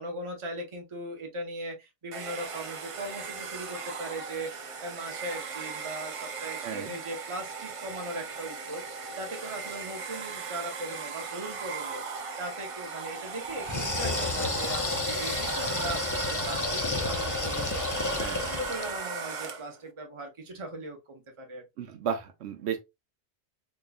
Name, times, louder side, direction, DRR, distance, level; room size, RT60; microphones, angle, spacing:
voice 1, 0.0-4.5 4.8-12.0 12.4-16.0 16.2-21.6, right 1 dB, 30° right, 0.8 m, -39 dB
Domestic sounds home sounds, 2.1-19.8, right 5 dB, 45° right, 0.4 m, -38 dB
voice 2, 6.6-6.9 18.2-18.5 21.8-22.8, right 8 dB, 75° right, 0.9 m, -33 dB
sound 1, 13.6-19.0, left 3 dB, 30° left, 0.3 m, -31 dB
3.7 x 3.0 x 2.3 m
omnidirectional pair, 1.2 m